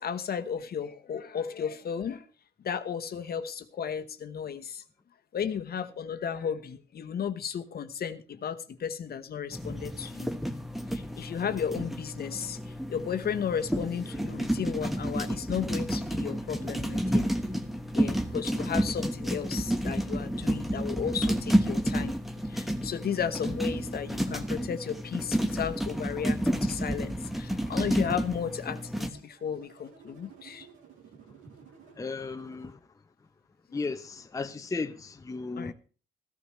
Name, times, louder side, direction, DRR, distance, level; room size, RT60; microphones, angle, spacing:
voice 1, 0.0-2.2 2.6-4.8 5.3-10.3 10.9-12.6 12.9-17.3 17.9-22.1 22.4-30.7 35.6-35.7, left 7 dB, 50° left, 1.0 m, -34 dB
sound 1, 9.5-29.1, equal, ahead, 1.2 m, -30 dB
sound 2, 27.9-32.7, right 6 dB, 85° right, 2.9 m, -55 dB
voice 2, 32.0-33.3 33.7-35.7, left 4 dB, 15° left, 0.6 m, -36 dB
14.0 x 13.5 x 3.1 m
cardioid pair, 90°, 20 cm